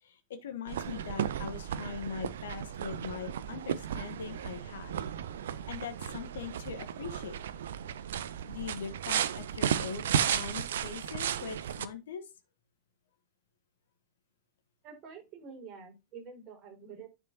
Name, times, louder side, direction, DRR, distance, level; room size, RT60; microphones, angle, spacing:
voice 1, 0.0-4.9 5.3-7.4 8.5-12.3, left 6 dB, 60° left, 1.2 m, -41 dB
sound 1, 0.7-11.9, right 9 dB, 60° right, 0.6 m, -34 dB
voice 2, 14.8-17.1, right 5 dB, 35° right, 4.7 m, -48 dB
10.0 x 6.1 x 2.9 m
figure-of-eight pair, 90°, 0 cm